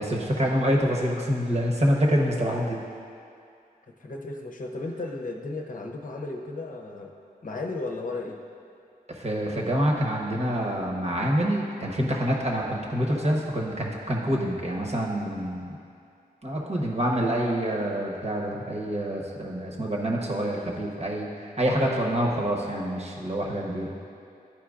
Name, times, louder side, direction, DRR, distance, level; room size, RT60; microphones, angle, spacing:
voice 1, 0.0-2.8 9.1-15.8 16.4-23.9, equal, 40° right, -1 dB, 1.0 m, -26 dB
voice 2, 4.0-7.1 7.4-8.4 20.5-20.7, left 2 dB, 55° left, 1 dB, 0.7 m, -35 dB
12.0 x 4.5 x 2.5 m, 2.4 s
wide cardioid pair, 65°, 16 cm